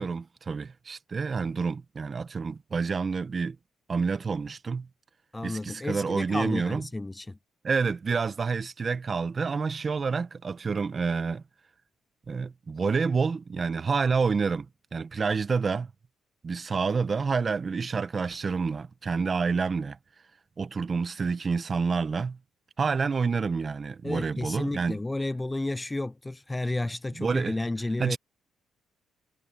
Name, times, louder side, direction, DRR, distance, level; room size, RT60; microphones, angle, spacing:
voice 1, 0.0-3.6 3.9-4.9 5.4-6.8 7.6-11.4 12.3-14.7 14.9-15.9 16.4-20.0 20.6-22.4 22.8-25.0 27.2-27.5 28.0-28.2, right 5 dB, 35° right, 1.1 m, -28 dB
voice 2, 5.3-7.4 24.0-28.2, left 2 dB, 15° left, 0.5 m, -32 dB
cardioid pair, 90°, 0 cm